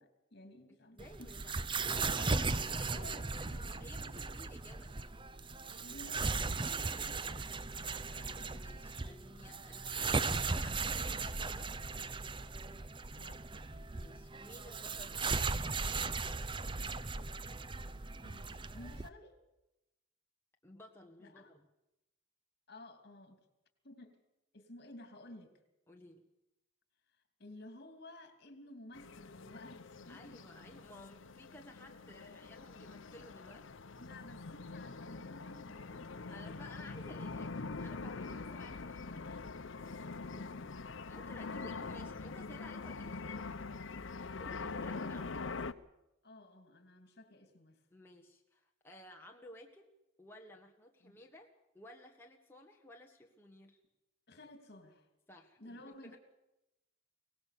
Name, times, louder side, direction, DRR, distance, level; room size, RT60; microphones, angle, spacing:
voice 1, 0.0-1.4 2.0-3.9 5.8-7.2 13.2-13.4 18.2-19.4 21.2-21.5 22.7-23.4 23.8-24.2 24.5-25.5 27.4-30.4 32.1-32.6 33.9-36.7 39.1-39.5 39.9-40.7 44.3-44.9 46.2-47.8 51.0-51.2 54.3-55.1 55.6-56.2, left 1 dB, 55° left, 7 dB, 2.9 m, -54 dB
voice 2, 0.7-5.2 7.0-7.4 8.1-11.7 13.9-16.0 20.6-21.7 25.9-26.2 30.1-33.7 36.3-39.3 39.8-40.0 41.1-43.5 44.4-45.6 47.9-49.9 50.2-51.5 51.7-53.8 55.3-56.2, left 1 dB, 10° left, 0 dB, 1.5 m, -56 dB
sound 1, 1.0-19.1, right 4 dB, 25° right, 0.7 m, -37 dB
sound 2, 28.9-45.7, left 4 dB, 75° left, 0.9 m, -44 dB
23.5 x 18.5 x 6.8 m, 0.92 s
head